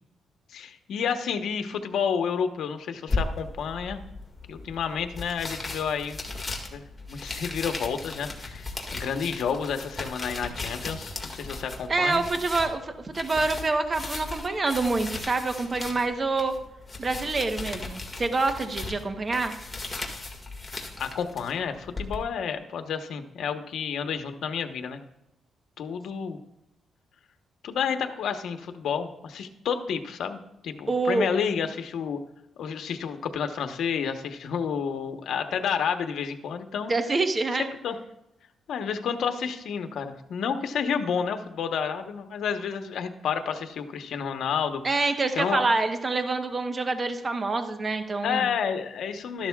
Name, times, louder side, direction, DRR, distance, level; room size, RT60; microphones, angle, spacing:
voice 1, 0.5-4.0 4.5-6.2 6.7-6.8 7.1-12.2 21.0-25.0 25.8-26.4 27.6-32.2 32.6-36.9 37.8-38.0 38.7-45.1 45.3-45.6 48.2-49.5, left 7 dB, 75° left, 7 dB, 1.0 m, -30 dB
sound 1, 3.1-22.2, left 2 dB, 15° left, 1.9 m, -37 dB
voice 2, 11.9-16.5 17.0-19.5 30.9-31.3 36.9-37.7 44.8-48.5, right 3 dB, 30° right, 7 dB, 0.9 m, -26 dB
13.0 x 11.5 x 2.4 m, 0.87 s
cardioid pair, 110°, 0 cm